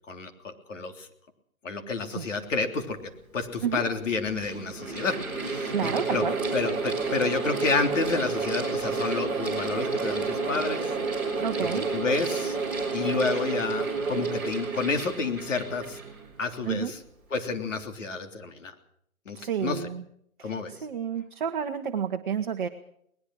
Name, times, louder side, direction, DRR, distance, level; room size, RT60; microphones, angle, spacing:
voice 1, 0.1-1.1 1.6-6.2 6.5-10.8 11.6-12.6 12.9-16.0 16.4-17.0 17.3-18.7 19.3-19.8 20.4-20.7, left 4 dB, 60° left, 5 dB, 3.5 m, -30 dB
Mechanical fan, 3.1-3.2 4.0-16.7, right 4 dB, 5° right, 4.3 m, -30 dB
voice 2, 5.7-6.4 11.4-11.9 16.6-16.9 19.3-20.0 20.4-22.7, right 7 dB, 35° right, 3 dB, 1.3 m, -30 dB
21.0 x 20.0 x 6.3 m, 0.70 s
hypercardioid pair, 165°, 42 cm